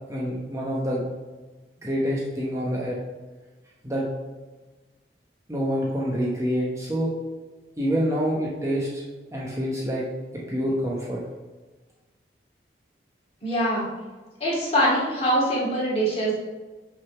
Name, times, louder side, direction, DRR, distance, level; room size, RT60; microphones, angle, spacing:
voice 1, 0.1-1.0 1.8-3.0 3.8-4.0 5.5-7.1 7.8-9.0 9.3-10.0 10.3-11.2, equal, 15° right, -5 dB, 0.9 m, -26 dB
voice 2, 13.4-13.9 14.4-16.3, equal, 35° left, -6 dB, 2.4 m, -23 dB
6.3 x 3.9 x 5.6 m, 1.3 s
head